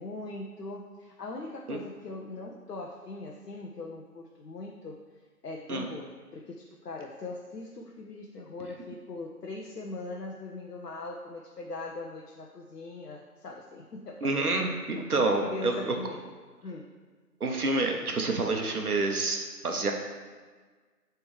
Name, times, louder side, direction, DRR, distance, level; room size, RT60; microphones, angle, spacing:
voice 1, 0.0-5.0 5.4-14.7 15.0-16.3 16.6-16.9, left 3 dB, 85° left, 0 dB, 0.8 m, -41 dB
voice 2, 14.2-15.9 17.4-19.9, right 3 dB, 65° right, 3 dB, 1.0 m, -28 dB
8.6 x 3.5 x 3.2 m, 1.4 s
figure-of-eight pair, 175°, 47 cm